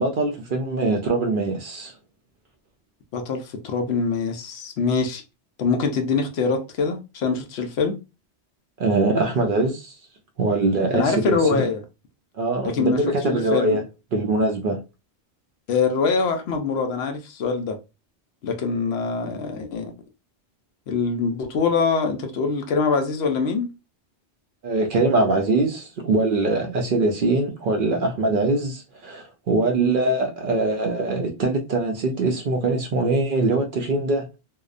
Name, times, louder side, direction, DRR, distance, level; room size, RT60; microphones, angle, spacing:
voice 1, 0.0-1.9 8.8-9.9 10.4-11.7 12.4-13.8 14.1-14.8 24.6-34.2, right 2 dB, 60° right, 0.6 m, -22 dB
voice 2, 3.1-5.2 5.6-8.0 10.9-11.8 12.7-13.8 15.7-17.8 18.4-19.9 20.9-23.7, left 5 dB, 70° left, 0.8 m, -24 dB
2.8 x 2.0 x 2.4 m
omnidirectional pair, 1.2 m